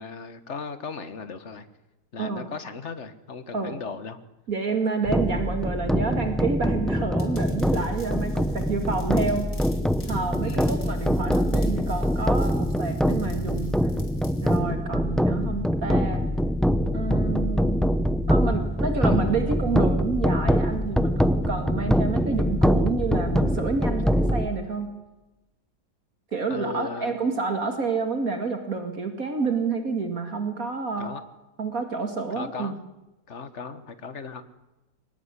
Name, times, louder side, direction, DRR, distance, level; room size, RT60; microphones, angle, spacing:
voice 1, 0.0-1.7 2.1-4.2 10.4-10.7 18.9-19.2 26.5-27.1 31.0-31.2 32.3-32.8 33.3-34.4, left 5 dB, 45° left, 12 dB, 1.7 m, -37 dB
voice 2, 2.2-2.5 3.5-3.8 4.5-9.5 10.1-13.9 14.4-16.3 16.9-17.9 18.3-25.0 26.3-31.1 31.6-32.8, right 4 dB, 55° right, 6 dB, 2.6 m, -29 dB
sound 1, 5.0-24.5, equal, ahead, 0.4 m, -24 dB
sound 2, 7.2-14.6, left 3 dB, 60° left, 3.5 m, -50 dB
24.0 x 19.5 x 9.8 m, 1.1 s
omnidirectional pair, 1.8 m